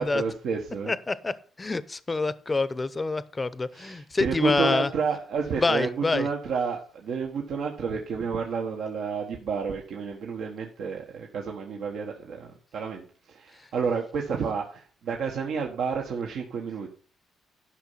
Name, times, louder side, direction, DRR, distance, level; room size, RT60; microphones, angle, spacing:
voice 1, 0.0-0.9 3.7-16.9, right 5 dB, 75° right, 0 dB, 1.4 m, -30 dB
voice 2, 0.9-4.9 5.6-6.3, left 3 dB, 25° left, 16 dB, 0.7 m, -27 dB
11.5 x 5.6 x 5.7 m, 0.43 s
cardioid pair, 90°, 0 cm